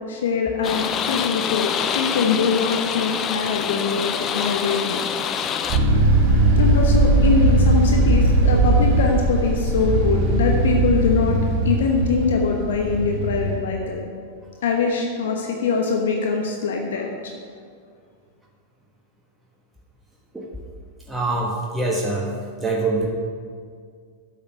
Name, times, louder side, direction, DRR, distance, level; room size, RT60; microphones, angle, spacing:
voice 1, 0.1-5.0 6.6-11.4 11.6-14.0 14.6-17.1, left 5 dB, 65° left, 1 dB, 1.0 m, -23 dB
sound 1, 0.6-5.8, left 7 dB, 30° left, 0.5 m, -26 dB
sound 2, 5.7-13.6, right 2 dB, 45° right, 1.8 m, -19 dB
voice 2, 21.1-22.3 22.6-23.1, right 3 dB, 5° right, -3 dB, 1.1 m, -24 dB
8.8 x 6.6 x 5.6 m, 2.1 s
figure-of-eight pair, 95°, 0 cm